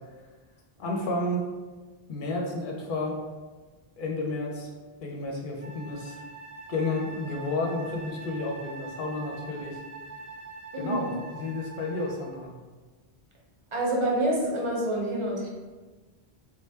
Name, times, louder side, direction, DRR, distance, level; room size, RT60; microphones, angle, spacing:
voice 1, 0.8-1.4 2.1-3.2 4.0-4.7 5.0-6.2 6.7-9.8 10.8-12.6, left 2 dB, 60° left, -1 dB, 0.8 m, -31 dB
Wind instrument woodwind instrument, 5.6-12.4, right 3 dB, 65° right, 0.9 m, -44 dB
voice 2, 13.7-15.5, right 1 dB, 35° right, -3 dB, 0.6 m, -27 dB
3.6 x 2.2 x 3.3 m, 1.3 s
omnidirectional pair, 1.1 m